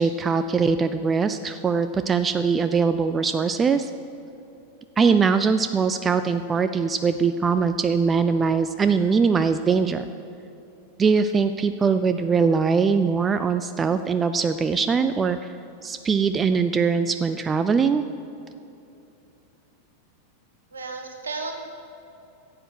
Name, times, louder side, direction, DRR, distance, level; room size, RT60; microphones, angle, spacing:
voice 1, 0.0-3.9 5.0-10.0 11.0-15.5 15.8-18.0, right 5 dB, 20° right, 11 dB, 0.3 m, -22 dB
voice 2, 20.7-21.5, right 4 dB, 70° right, 4 dB, 1.3 m, -33 dB
11.0 x 7.8 x 6.4 m, 2.8 s
figure-of-eight pair, 90°, 0 cm